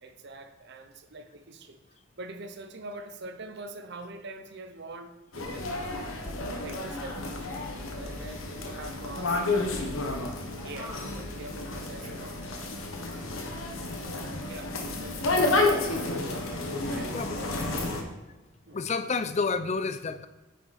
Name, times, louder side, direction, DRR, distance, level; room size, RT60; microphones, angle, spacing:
voice 1, 0.0-1.8 2.2-6.1 6.6-7.7 7.9-9.4 9.8-10.0 10.6-12.6 14.0-16.4 16.7-17.8 18.7-18.8, right 2 dB, 55° right, 8 dB, 0.8 m, -44 dB
sound 1, 5.3-18.0, left 2 dB, 80° left, 1.2 m, -31 dB
voice 2, 13.6-13.9 17.1-17.4 18.7-20.3, left 4 dB, 35° left, 12 dB, 0.4 m, -30 dB
9.4 x 5.8 x 4.2 m, 1.2 s
head